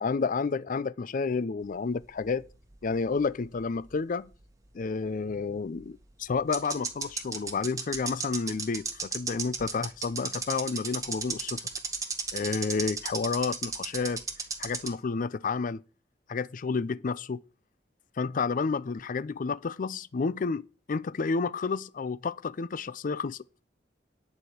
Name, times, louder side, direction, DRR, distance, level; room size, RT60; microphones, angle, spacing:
voice 1, 0.0-2.4 2.8-4.3 4.7-11.6 12.3-14.2 14.6-15.8 16.3-17.4 18.2-23.4, left 4 dB, 50° left, 0.4 m, -30 dB
sound 1, 2.0-3.6 3.8-3.9 5.8-5.9 6.5-14.9, right 5 dB, 20° right, 1.6 m, -33 dB
10.0 x 5.0 x 8.0 m
head